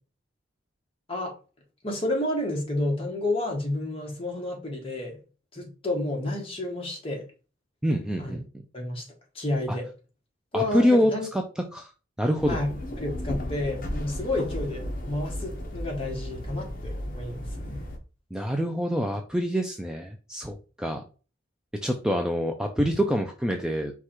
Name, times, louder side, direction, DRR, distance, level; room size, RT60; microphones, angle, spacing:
voice 1, 1.8-5.2 5.5-7.3 8.2-8.4 8.7-9.1 9.3-9.9 10.5-11.3 12.5-17.9, left 1 dB, 30° left, 1.3 m, -30 dB
voice 2, 7.8-8.4 9.7-9.8 10.5-11.9 12.2-12.6 18.3-21.0 21.8-23.9, equal, 5° right, 0.3 m, -26 dB
sound 1, 12.4-18.0, left 1 dB, 45° left, 0.9 m, -34 dB
4.7 x 2.4 x 4.3 m
head